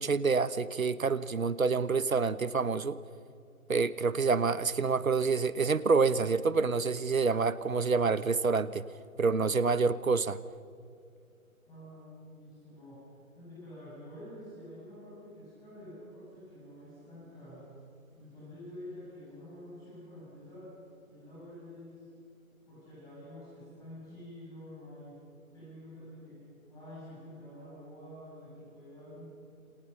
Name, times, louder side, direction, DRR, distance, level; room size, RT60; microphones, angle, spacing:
voice 1, 0.0-3.0 3.7-8.9 9.2-10.4, right 4 dB, 70° right, 15 dB, 1.2 m, -27 dB
voice 2, 11.7-17.7 18.2-20.7 21.1-22.0 22.7-25.2 25.5-26.4 26.7-29.2, left 1 dB, 10° left, -9 dB, 7.9 m, -48 dB
28.5 x 28.0 x 5.7 m, 2.3 s
figure-of-eight pair, 150°, 43 cm